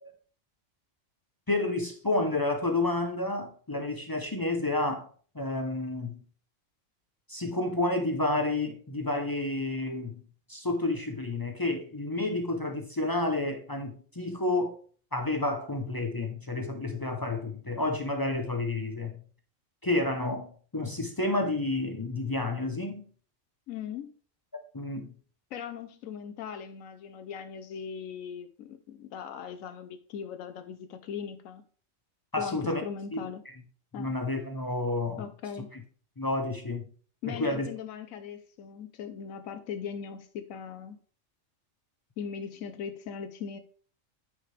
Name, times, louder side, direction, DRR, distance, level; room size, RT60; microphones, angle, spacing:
voice 1, 1.5-5.1 5.3-6.2 7.3-10.2 10.5-14.8 15.1-19.2 19.8-23.0 24.7-25.1 32.3-32.8 33.1-33.3 34.0-35.2 36.2-36.8 37.3-37.7, left 2 dB, 25° left, 0.5 m, -30 dB
voice 2, 23.7-24.1 25.5-31.6 32.4-33.4 33.9-34.1 35.2-35.7 37.2-41.0 42.2-43.6, left 7 dB, 85° left, 1.1 m, -39 dB
8.9 x 5.0 x 3.2 m
omnidirectional pair, 1.4 m